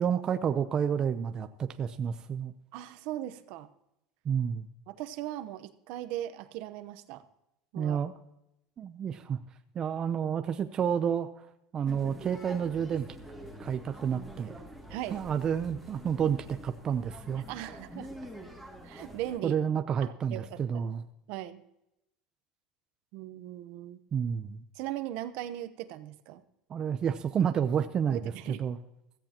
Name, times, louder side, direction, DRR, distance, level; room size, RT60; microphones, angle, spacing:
voice 1, 0.0-2.5 4.2-4.7 7.8-8.1 8.8-9.4 9.7-11.5 11.7-13.1 13.6-14.5 15.1-17.4 19.4-21.0 24.1-24.6 26.7-28.8, right 8 dB, 30° right, 8 dB, 0.6 m, -30 dB
voice 2, 2.7-3.7 4.9-7.2 7.7-8.0 14.9-15.2 17.5-18.3 18.8-19.6 20.0-20.8 21.3-21.6 23.1-24.0 24.7-26.4 28.1-28.6, right 13 dB, 65° right, 12 dB, 1.0 m, -39 dB
sound 1, 11.9-19.4, equal, 5° left, 2.4 m, -46 dB
16.0 x 14.5 x 3.0 m, 0.84 s
supercardioid pair, 135°, 2 cm